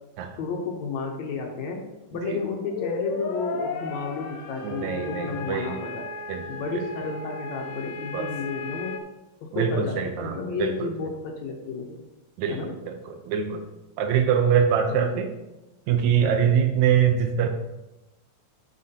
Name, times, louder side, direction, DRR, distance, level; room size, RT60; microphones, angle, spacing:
voice 1, 0.4-1.8 2.1-6.1 6.5-9.0 9.4-12.0 12.5-12.7 14.9-15.3, left 4 dB, 70° left, 2 dB, 1.9 m, -32 dB
sound 1, 2.5-9.0, left 4 dB, 85° left, 2.5 m, -35 dB
voice 2, 4.6-5.8 6.3-6.4 6.7-6.8 8.1-8.3 9.5-11.1 12.4-13.6 14.0-15.3 15.9-17.5, right 7 dB, 70° right, 6 dB, 1.9 m, -24 dB
11.5 x 6.0 x 2.8 m, 0.99 s
omnidirectional pair, 3.8 m